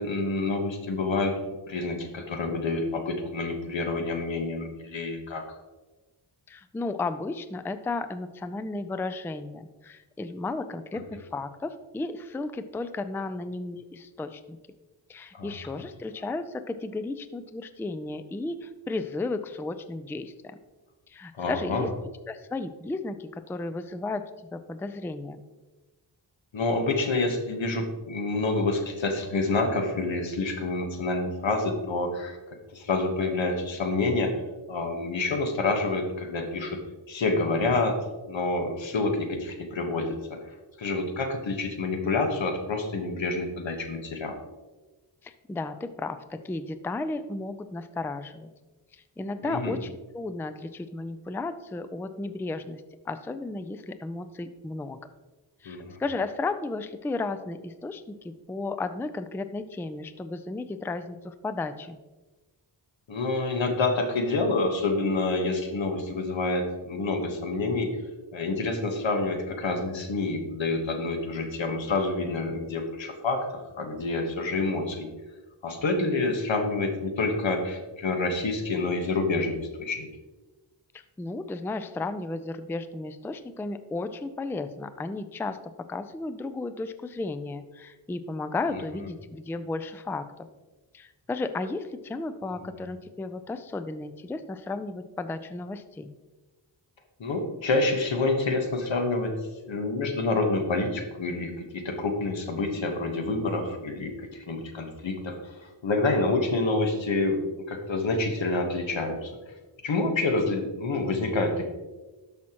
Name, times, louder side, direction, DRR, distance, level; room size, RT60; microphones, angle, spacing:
voice 1, 0.0-1.4 1.7-5.4 15.3-15.5 21.4-21.9 26.5-32.4 32.7-34.4 34.7-36.8 37.1-38.0 38.3-40.4 40.8-44.4 49.4-49.8 55.6-56.0 63.1-67.9 68.3-75.1 75.6-80.1 88.7-88.8 92.6-92.7 97.2-99.3 99.7-109.3 109.8-111.7, left 3 dB, 80° left, 4 dB, 1.3 m, -28 dB
voice 2, 6.5-14.6 15.1-20.6 21.1-21.9 22.3-24.2 24.5-25.4 45.2-48.5 48.9-55.0 55.6-62.0 80.9-85.6 85.9-90.5 90.9-96.1, left 3 dB, 5° left, 11 dB, 0.3 m, -34 dB
12.5 x 5.7 x 3.0 m, 1.2 s
wide cardioid pair, 100°, 45 cm